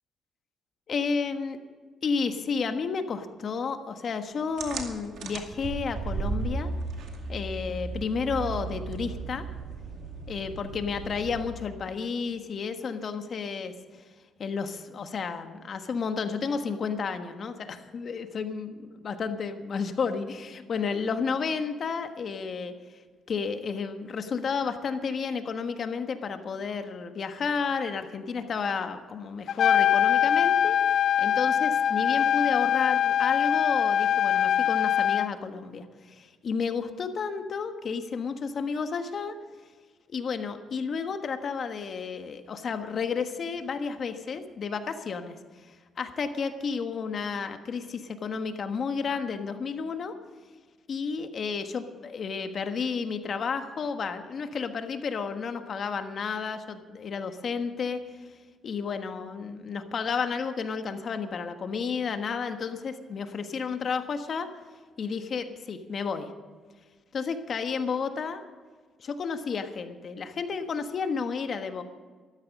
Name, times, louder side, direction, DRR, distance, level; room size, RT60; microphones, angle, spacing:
voice 1, 0.9-1.6 2.0-6.7 7.3-9.5 10.3-13.7 14.4-23.0 23.3-39.3 40.1-45.4 45.7-50.1 50.9-58.0 58.6-64.5 65.0-66.3 67.1-68.5 69.0-71.8, left 5 dB, 50° left, 7 dB, 1.4 m, -32 dB
sound 1, 4.6-11.7, right 3 dB, 75° right, 2.2 m, -35 dB
Trumpet, 29.5-35.3, left 9 dB, 70° left, 0.3 m, -23 dB
14.0 x 13.0 x 5.4 m, 1.5 s
cardioid pair, 90°, 0 cm